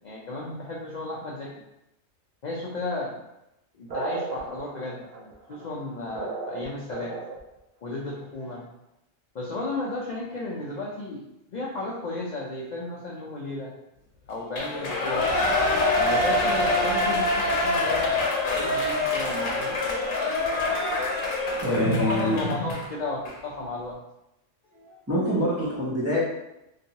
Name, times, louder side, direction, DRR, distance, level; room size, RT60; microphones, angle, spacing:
voice 1, 0.0-1.5 2.4-3.1 3.7-7.2 7.8-8.6 9.3-13.7 14.3-18.2 18.4-20.0 21.7-24.0 24.6-25.0, left 2 dB, 65° left, -3 dB, 0.4 m, -33 dB
sound 1, 3.9-7.6, right 3 dB, 55° right, 0.7 m, -35 dB
Shout / Cheering, 14.5-22.9 23.3-23.4, left 2 dB, 85° left, 1.0 m, -25 dB
voice 2, 21.6-22.4 25.1-26.2, equal, 20° right, -7 dB, 0.5 m, -25 dB
2.9 x 2.7 x 2.8 m, 0.88 s
omnidirectional pair, 1.3 m